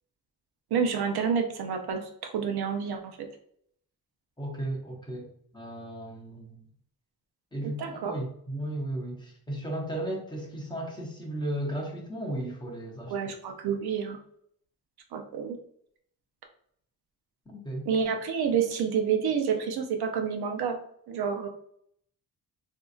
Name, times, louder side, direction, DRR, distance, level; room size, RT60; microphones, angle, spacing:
voice 1, 0.7-3.0 7.6-8.2 13.1-14.2 15.1-15.6 17.9-20.8 21.1-21.5, right 7 dB, 80° right, 4 dB, 0.7 m, -29 dB
voice 2, 4.4-5.3 5.5-6.6 7.5-13.1 17.5-17.9, right 1 dB, 10° left, -2 dB, 0.8 m, -35 dB
3.8 x 2.7 x 2.4 m, 0.66 s
wide cardioid pair, 160°, 37 cm